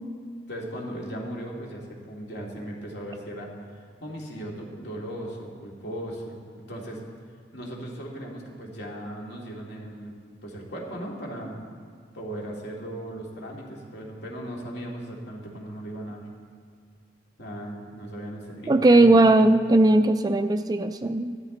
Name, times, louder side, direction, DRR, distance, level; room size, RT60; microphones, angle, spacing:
voice 1, 0.5-7.0 7.5-10.2 10.4-11.6 12.1-16.3 17.4-19.3, right 1 dB, 65° left, -2 dB, 2.5 m, -37 dB
voice 2, 18.7-21.4, right 2 dB, 20° right, 9 dB, 0.3 m, -18 dB
14.5 x 12.5 x 3.9 m, 2.2 s
head